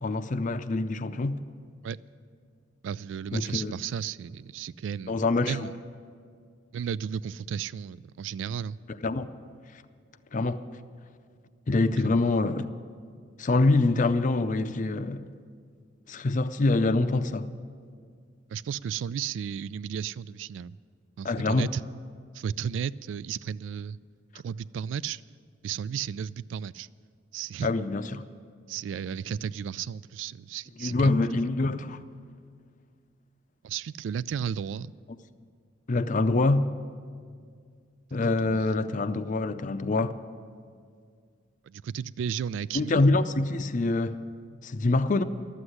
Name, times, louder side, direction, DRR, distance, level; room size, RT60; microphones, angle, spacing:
voice 1, 0.0-1.4 3.3-3.7 5.1-5.6 9.0-9.3 10.3-10.6 11.7-12.7 13.4-15.2 16.1-17.5 21.2-21.7 27.6-28.2 30.8-32.0 35.9-36.7 38.1-40.2 42.7-44.2 44.6-45.2, left 2 dB, 45° left, 0.5 m, -25 dB
voice 2, 2.8-5.7 6.7-8.8 12.0-12.2 18.5-20.8 21.2-21.8 22.3-24.0 24.3-25.2 25.6-26.9 27.3-27.7 28.7-31.1 33.6-34.9 38.2-38.7 41.6-43.0, right 8 dB, 80° right, 0.3 m, -34 dB
12.5 x 8.0 x 9.8 m
head